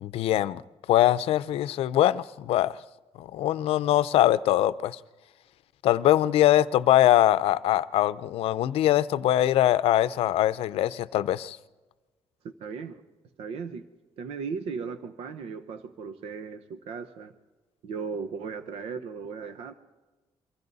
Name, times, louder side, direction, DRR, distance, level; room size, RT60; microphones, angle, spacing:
voice 1, 0.0-0.6 0.9-2.7 3.2-5.0 5.8-11.6, left 13 dB, 75° left, 0.6 m, -22 dB
voice 2, 12.6-13.0 13.4-13.8 14.2-17.3 17.8-19.7, right 5 dB, 75° right, 1.0 m, -36 dB
29.0 x 24.0 x 4.1 m
cardioid pair, 175°, 10 cm